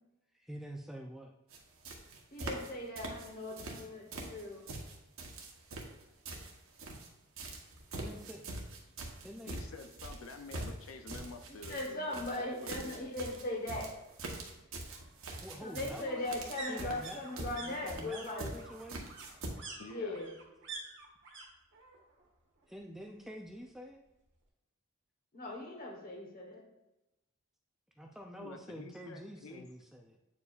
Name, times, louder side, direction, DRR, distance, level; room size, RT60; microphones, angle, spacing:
voice 1, 0.3-1.3 6.0-6.1 8.0-8.4 9.2-9.6 15.2-16.3 16.7-19.2 22.7-24.0 28.0-30.2, equal, ahead, 2 dB, 0.4 m, -47 dB
sound 1, 1.5-1.6 1.8-2.7 2.9-3.8 4.1-7.1 7.4-19.5, right 2 dB, 80° right, 1.1 m, -43 dB
voice 2, 2.3-4.7 11.6-13.9 15.6-18.5 19.9-20.3 25.3-26.6, left 2 dB, 45° left, 1 dB, 1.2 m, -39 dB
voice 3, 9.5-13.0 19.8-20.2 28.4-29.7, left 3 dB, 80° left, 6 dB, 0.5 m, -49 dB
sound 2, 11.6-12.4 13.7-21.5 21.7-22.3 22.6-23.6 23.9-24.0, right 3 dB, 60° right, 1.3 m, -49 dB
8.4 x 4.6 x 2.4 m, 0.96 s
head